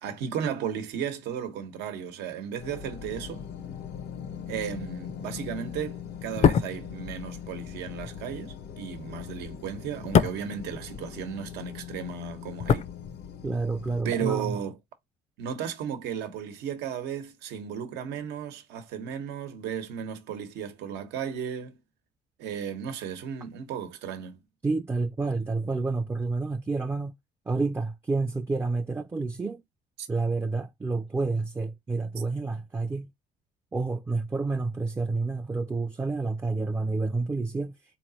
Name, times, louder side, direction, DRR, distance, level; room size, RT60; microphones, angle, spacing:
voice 1, 0.0-3.4 4.5-12.9 14.0-14.8 15.4-21.7 22.4-24.4 30.0-30.1, right 8 dB, 85° right, 1.0 m, -34 dB
sound 1, 2.6-14.0, left 8 dB, 75° left, 0.7 m, -41 dB
sound 2, 6.2-11.6 11.8-13.7 13.9-14.1, left 7 dB, 45° left, 0.5 m, -27 dB
voice 2, 13.4-14.6 24.6-27.2 27.5-29.6 30.1-33.1 33.7-37.8, right 3 dB, 15° right, 0.4 m, -29 dB
4.1 x 3.1 x 2.7 m
cardioid pair, 110°, 17 cm